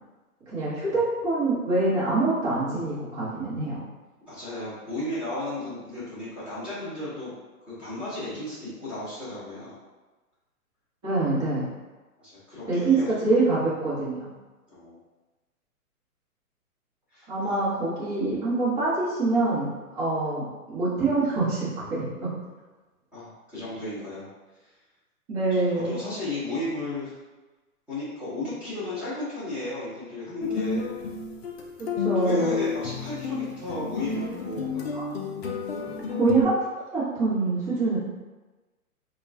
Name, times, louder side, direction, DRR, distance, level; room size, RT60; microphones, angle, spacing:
voice 1, 0.5-3.8 11.0-11.7 12.7-14.3 17.3-22.3 25.3-26.0 31.8-32.6 34.9-35.1 36.1-36.5 36.9-38.0, right 3 dB, 20° right, -11 dB, 1.1 m, -25 dB
voice 2, 4.3-7.3 7.6-9.8 12.2-13.2 14.7-15.0 17.1-17.5 23.1-24.3 25.5-27.2 27.9-30.9 32.2-34.8, left 2 dB, 5° right, -13 dB, 0.7 m, -34 dB
sound 1, 30.4-36.4, left 5 dB, 45° left, 0.5 m, -30 dB
4.3 x 2.4 x 2.6 m, 1.2 s
hypercardioid pair, 150°, 45 cm